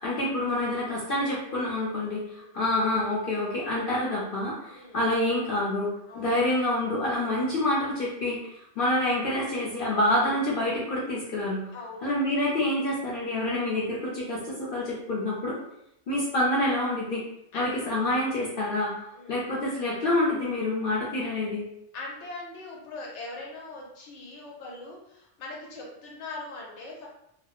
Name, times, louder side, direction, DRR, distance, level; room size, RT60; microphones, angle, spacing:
voice 1, 0.0-5.9 6.1-8.4 8.8-11.6 12.0-15.6 16.1-17.2 17.5-18.9 19.3-21.7, left 1 dB, 60° left, -6 dB, 0.7 m, -27 dB
voice 2, 4.7-5.0 6.1-6.5 11.7-12.2 17.5-17.7 19.1-19.4 21.9-27.1, left 2 dB, 90° left, -2 dB, 1.0 m, -41 dB
2.2 x 2.0 x 2.9 m, 0.78 s
omnidirectional pair, 1.1 m